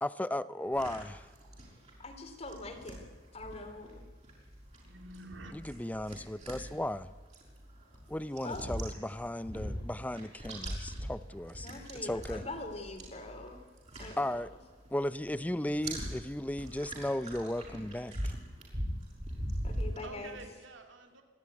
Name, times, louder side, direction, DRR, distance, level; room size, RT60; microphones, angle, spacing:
voice 1, 0.0-1.3 5.5-7.1 8.1-11.7 12.0-12.4 14.2-14.5 14.9-18.3, left 1 dB, 10° left, 15 dB, 0.5 m, -35 dB
sound 1, 0.7-15.0 15.2-20.4, equal, 35° right, 6.2 m, -42 dB
voice 2, 2.0-4.0 8.4-8.6 11.6-13.6 14.0-14.4 19.6-20.4, left 2 dB, 30° left, 6 dB, 2.8 m, -43 dB
voice 3, 4.8-5.5 19.7-21.2, right 2 dB, 70° right, 5 dB, 2.8 m, -49 dB
26.5 x 12.0 x 9.6 m, 1.5 s
head